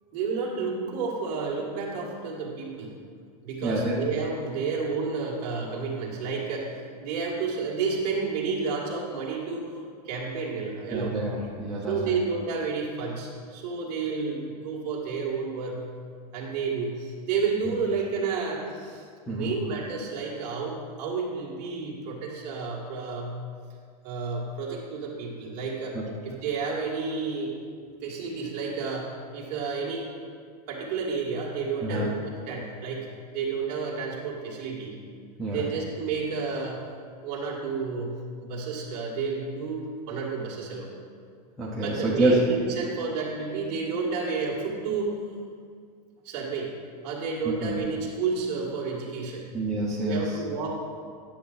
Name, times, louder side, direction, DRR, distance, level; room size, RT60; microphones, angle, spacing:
voice 1, 0.1-2.9 3.4-9.7 10.0-11.2 11.9-15.8 16.3-23.3 24.0-26.0 26.2-27.5 28.0-30.1 30.7-33.1 33.3-35.0 35.5-36.8 37.2-40.9 41.8-45.2 46.2-46.7 47.0-49.5 50.0-50.9, right 4 dB, 30° right, -4 dB, 1.6 m, -31 dB
voice 2, 3.6-4.0 10.9-12.2 19.3-19.5 25.9-26.0 31.8-32.1 35.4-35.7 41.6-42.4 47.6-47.8 49.5-50.4, right 1 dB, ahead, -7 dB, 0.6 m, -27 dB
10.0 x 7.2 x 3.9 m, 2.1 s
supercardioid pair, 175°, 21 cm